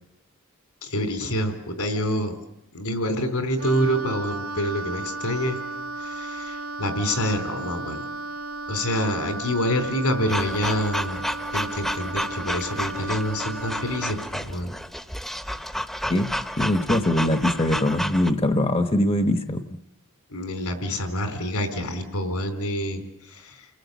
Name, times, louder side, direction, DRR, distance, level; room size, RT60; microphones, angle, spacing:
voice 1, 0.8-2.4 2.7-5.6 6.0-8.0 8.7-11.2 11.5-14.7 20.3-23.7, equal, 85° left, 6 dB, 4.0 m, -27 dB
Wind instrument woodwind instrument, 3.6-14.2, right 2 dB, 75° right, 1.0 m, -34 dB
sound 1, 10.3-18.3, equal, ahead, 0.9 m, -31 dB
voice 2, 16.6-19.6, left 1 dB, 25° left, 7 dB, 0.9 m, -22 dB
30.0 x 19.5 x 8.2 m, 0.86 s
head